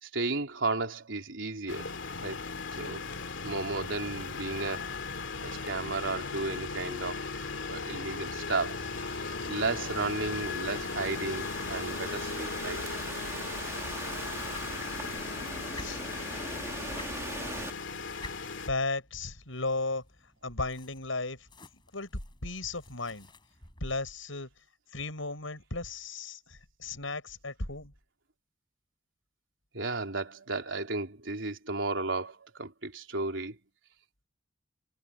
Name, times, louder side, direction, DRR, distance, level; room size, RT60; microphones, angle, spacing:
voice 1, 0.0-1.9 2.2-2.4 2.7-3.0 3.4-4.9 5.4-8.8 9.5-12.8 29.7-33.6, right 3 dB, 75° right, 3.5 m, -34 dB
sound 1, 1.7-18.7, left 4 dB, 75° left, 2.4 m, -37 dB
Thunderstorm / Rain, 8.7-17.7, right 2 dB, 15° right, 1.7 m, -41 dB
sound 2, 14.4-24.0, left 3 dB, 25° left, 7.9 m, -52 dB
voice 2, 18.6-20.0 20.4-21.5 21.9-23.3 23.8-24.5 24.9-27.9, left 3 dB, 90° left, 7.3 m, -35 dB
head